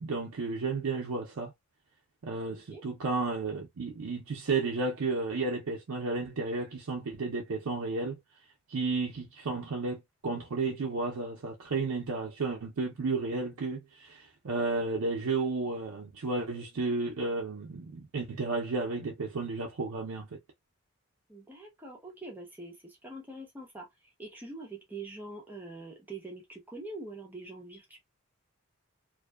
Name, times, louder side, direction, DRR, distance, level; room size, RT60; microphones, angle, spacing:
voice 1, 0.0-1.5 2.2-8.2 8.7-20.4, right 3 dB, 75° right, 0.5 m, -32 dB
voice 2, 2.5-2.8 21.3-28.0, right 2 dB, 10° right, 0.7 m, -44 dB
2.5 x 2.1 x 2.2 m
head